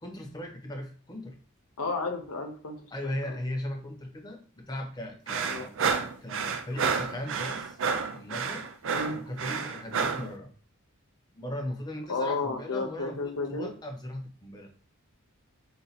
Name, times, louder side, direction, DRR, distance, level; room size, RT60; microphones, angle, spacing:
voice 1, 0.0-1.4 2.9-5.8 6.2-7.8 8.1-8.7 9.1-10.5 11.3-14.7, left 1 dB, 20° left, 3 dB, 0.6 m, -38 dB
voice 2, 1.8-3.4 5.5-5.7 8.9-9.2 12.1-13.7, left 3 dB, 75° left, 4 dB, 0.9 m, -32 dB
sound 1, 5.3-10.3, right 5 dB, 55° right, 0.5 m, -30 dB
3.9 x 2.8 x 4.0 m, 0.42 s
head